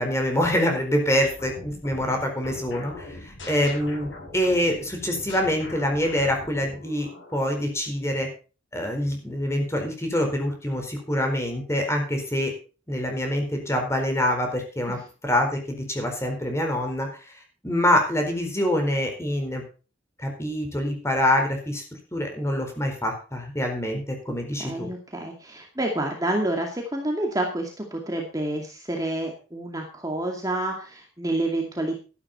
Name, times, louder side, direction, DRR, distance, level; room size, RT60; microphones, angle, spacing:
voice 1, 0.0-8.3 8.7-12.5 12.9-17.3 17.6-19.6 20.2-24.9, left 1 dB, 15° left, 3 dB, 4.3 m, -25 dB
sound 1, 1.2-7.4, left 2 dB, 85° left, 7.6 m, -41 dB
voice 2, 24.3-32.0, right 1 dB, 20° right, 1 dB, 2.3 m, -29 dB
13.0 x 11.5 x 4.2 m, 0.35 s
head